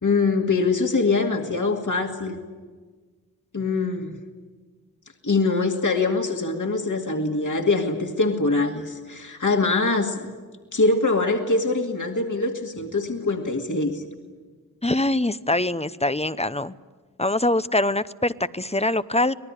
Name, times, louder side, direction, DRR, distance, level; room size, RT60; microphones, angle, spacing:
voice 1, 0.0-2.4 3.5-4.2 5.2-10.2 10.7-14.0, left 3 dB, 55° left, 2 dB, 2.3 m, -23 dB
voice 2, 14.8-16.7 17.2-19.3, left 1 dB, 15° left, 15 dB, 0.7 m, -23 dB
26.0 x 19.0 x 9.9 m, 1.4 s
wide cardioid pair, 45°, 36 cm